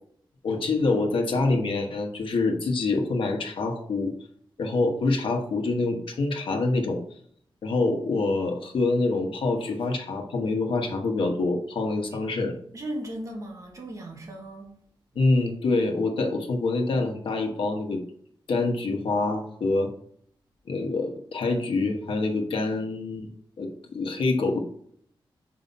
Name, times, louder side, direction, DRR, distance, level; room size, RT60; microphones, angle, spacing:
voice 1, 0.4-4.1 4.6-7.0 7.6-12.6 15.1-18.0 18.5-19.9 20.7-23.3 23.6-24.6, left 3 dB, 75° left, 1.2 m, -26 dB
voice 2, 12.7-14.7 15.1-15.3, right 1 dB, 40° right, 1.3 m, -37 dB
5.6 x 4.9 x 4.2 m
wide cardioid pair, 170°, 9 cm